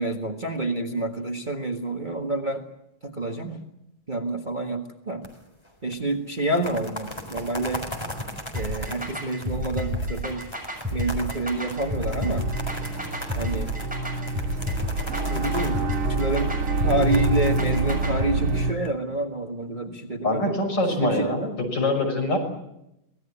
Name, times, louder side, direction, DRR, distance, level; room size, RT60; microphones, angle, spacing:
voice 1, 0.0-2.7 3.0-3.6 4.1-5.3 5.8-7.9 8.5-10.5 10.9-12.5 13.4-13.7 15.3-16.5 16.8-21.6, right 2 dB, 25° right, 3 dB, 1.6 m, -28 dB
sound 1, 5.2-5.7 5.9-6.0 6.4-18.9, left 1 dB, 10° left, 4.0 m, -38 dB
sound 2, 8.5-18.3, left 1 dB, 5° right, 6.9 m, -31 dB
sound 3, 11.4-18.7, right 3 dB, 85° right, 2.7 m, -27 dB
voice 2, 20.2-22.4, left 2 dB, 55° left, 3 dB, 6.9 m, -24 dB
24.5 x 19.0 x 9.8 m, 0.84 s
omnidirectional pair, 2.3 m